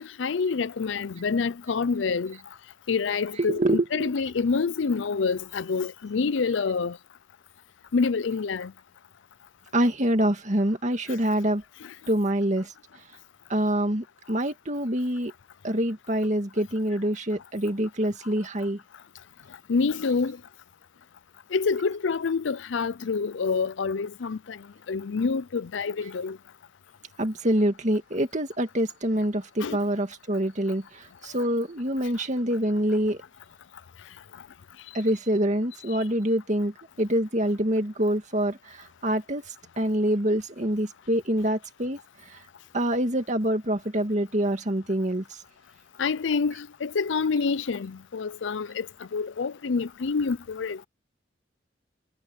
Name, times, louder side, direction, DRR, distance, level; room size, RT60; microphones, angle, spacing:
voice 1, 0.0-2.4 2.9-7.0 7.9-8.7 11.8-11.9 19.7-20.4 21.5-26.4 29.6-29.8 46.0-50.9, left 5 dB, 80° left, 0.5 m, -27 dB
voice 2, 3.3-4.1 9.7-11.6 12.1-12.7 13.5-15.3 15.6-18.8 27.2-33.2 34.9-42.4 42.7-45.2, right 1 dB, 40° right, 2.3 m, -26 dB
head